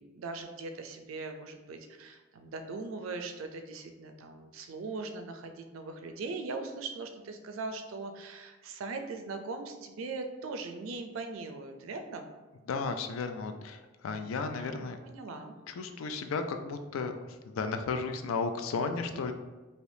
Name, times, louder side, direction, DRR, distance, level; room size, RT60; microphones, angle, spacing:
voice 1, 0.0-12.3 14.6-15.6, right 3 dB, 80° right, 7 dB, 0.4 m, -40 dB
voice 2, 12.7-15.0 15.7-17.2 17.5-19.3, left 4 dB, 80° left, 8 dB, 0.3 m, -34 dB
3.3 x 2.7 x 2.6 m, 1.2 s
head